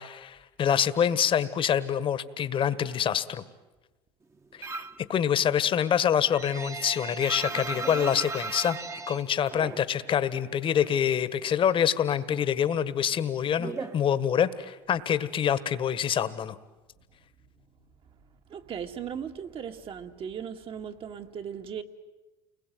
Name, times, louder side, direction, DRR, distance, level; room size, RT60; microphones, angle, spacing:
voice 1, 0.0-3.4 4.6-4.8 5.1-8.8 9.1-16.6, left 9 dB, 45° left, 1.6 m, -26 dB
sound 1, 4.6-5.1 5.4-10.3 10.5-11.6 11.9-14.7, right 3 dB, 20° right, 1.5 m, -37 dB
voice 2, 17.4-21.8, right 8 dB, 45° right, 2.1 m, -38 dB
29.5 x 21.0 x 9.4 m
supercardioid pair, 90°, 13 cm